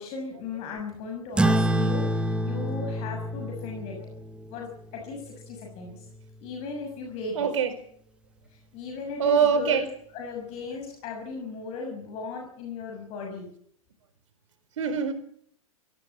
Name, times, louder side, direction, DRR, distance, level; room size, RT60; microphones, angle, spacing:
voice 1, 0.0-4.0 4.5-6.1 6.4-7.5 8.7-9.9 10.1-13.5, left 4 dB, 35° left, 6.5 m, -37 dB
sound 1, 1.4-6.2, right 1 dB, 5° right, 1.4 m, -28 dB
voice 2, 7.3-7.8 9.2-9.9 14.8-15.1, right 6 dB, 60° right, 4.5 m, -23 dB
23.0 x 16.5 x 7.8 m
figure-of-eight pair, 105°, 18 cm